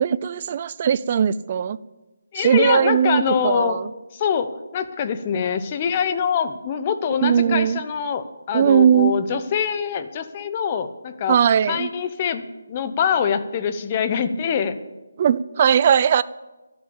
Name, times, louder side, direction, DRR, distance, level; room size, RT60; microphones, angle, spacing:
voice 1, 0.0-1.8 2.3-3.9 7.2-7.8 8.5-9.1 11.3-11.9 15.2-16.2, right 8 dB, 35° right, 17 dB, 0.5 m, -19 dB
voice 2, 2.3-3.8 4.1-11.4 11.7-12.4 12.7-14.8, left 7 dB, 30° left, 10 dB, 0.9 m, -24 dB
12.0 x 8.6 x 8.7 m, 1.1 s
figure-of-eight pair, 160°, 0 cm